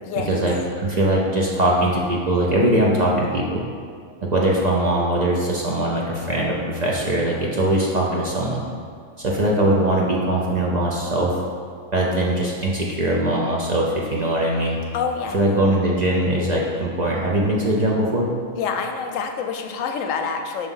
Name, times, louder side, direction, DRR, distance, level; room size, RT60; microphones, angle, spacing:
voice 1, 0.3-3.6 4.3-8.6 9.2-11.3 11.9-14.8 15.3-18.3, right 1 dB, 45° right, -3 dB, 0.6 m, -21 dB
voice 2, 14.9-15.4 18.5-20.7, left 6 dB, 85° left, 4 dB, 1.0 m, -27 dB
5.2 x 3.5 x 5.5 m, 2.1 s
omnidirectional pair, 1.3 m